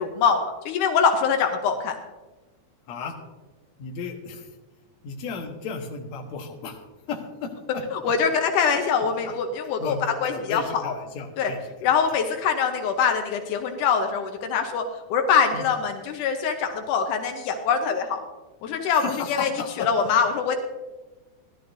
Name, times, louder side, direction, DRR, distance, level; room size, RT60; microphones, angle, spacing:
voice 1, 0.0-2.0 7.9-10.9 11.4-11.5 11.8-14.8 15.1-18.2 18.6-19.5 19.9-20.6, left 6 dB, 85° left, 4 dB, 2.4 m, -23 dB
voice 2, 3.8-4.5 5.0-6.8 7.1-7.8 9.2-9.4 9.8-11.9 15.5-15.6 18.9-19.9, left 5 dB, 65° left, 1 dB, 2.4 m, -34 dB
16.5 x 12.0 x 2.6 m, 1.2 s
omnidirectional pair, 3.6 m